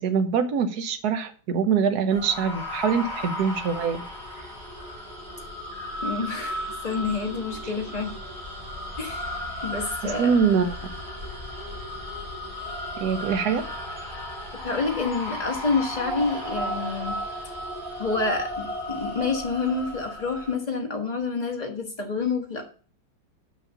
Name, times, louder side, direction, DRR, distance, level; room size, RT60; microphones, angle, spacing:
voice 1, 0.0-4.0 10.0-10.7 13.0-13.6, right 6 dB, 60° right, 8 dB, 1.3 m, -24 dB
sound 1, 2.1-20.6, left 1 dB, 25° right, 3.7 m, -35 dB
voice 2, 6.0-8.2 9.0-10.3 14.6-17.2 18.0-22.6, left 4 dB, 25° left, 2 dB, 1.2 m, -28 dB
6.4 x 5.5 x 7.0 m, 0.41 s
omnidirectional pair, 2.1 m